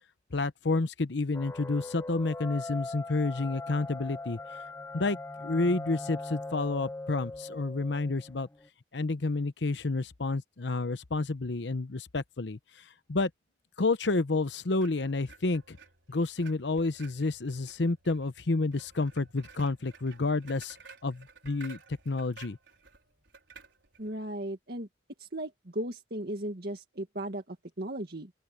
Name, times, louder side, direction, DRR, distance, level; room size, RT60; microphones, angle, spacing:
voice 1, 0.3-4.4 4.9-8.5 8.9-12.6 13.1-13.3 13.8-15.8 16.1-20.8 21.0-21.8 22.1-22.6, left 3 dB, 75° left, 0.9 m, -30 dB
sound 1, 1.3-8.7, left 2 dB, 15° left, 0.5 m, -41 dB
sound 2, 14.7-24.1, right 5 dB, 85° right, 4.7 m, -54 dB
voice 2, 24.0-24.9 25.2-28.3, right 1 dB, 55° right, 2.1 m, -36 dB
open air
head